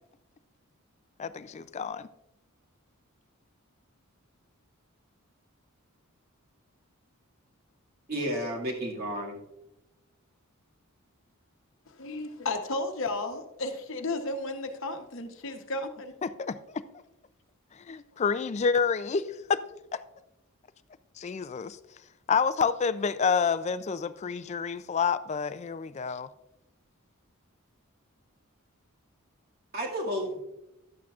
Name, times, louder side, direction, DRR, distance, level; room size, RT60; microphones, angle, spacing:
voice 1, 1.2-2.1 16.2-16.6 17.9-19.6 19.9-20.0 21.2-21.8 22.3-26.3, left 5 dB, 30° left, 0.3 m, -28 dB
voice 2, 8.1-9.4 29.7-30.4, equal, 45° right, 2.1 m, -32 dB
voice 3, 12.0-16.1, left 2 dB, 60° left, 0.9 m, -33 dB
11.5 x 8.4 x 2.4 m
head